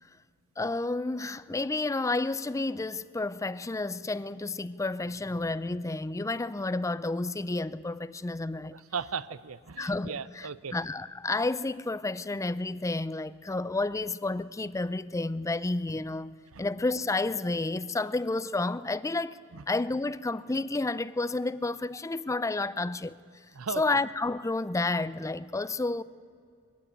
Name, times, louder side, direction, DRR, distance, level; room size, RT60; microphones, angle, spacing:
voice 1, 0.6-8.7 9.8-19.4 19.7-23.2 23.8-26.0, left 2 dB, 15° left, 0.4 m, -31 dB
voice 2, 8.7-10.7 16.5-16.6 19.5-19.6 23.5-23.8, right 6 dB, 85° right, 0.7 m, -37 dB
21.5 x 15.5 x 9.9 m
head